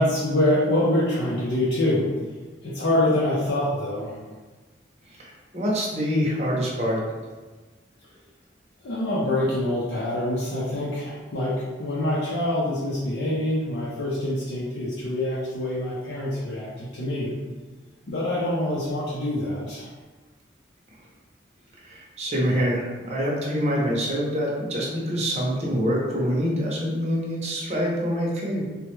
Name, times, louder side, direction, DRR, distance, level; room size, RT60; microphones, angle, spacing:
voice 1, 0.0-2.1 2.6-4.2 8.8-17.3 18.1-19.9, left 1 dB, 75° left, -7 dB, 0.6 m, -25 dB
voice 2, 5.2-7.0 21.8-28.6, equal, 35° right, -3 dB, 0.6 m, -25 dB
3.4 x 2.2 x 3.0 m, 1.3 s
head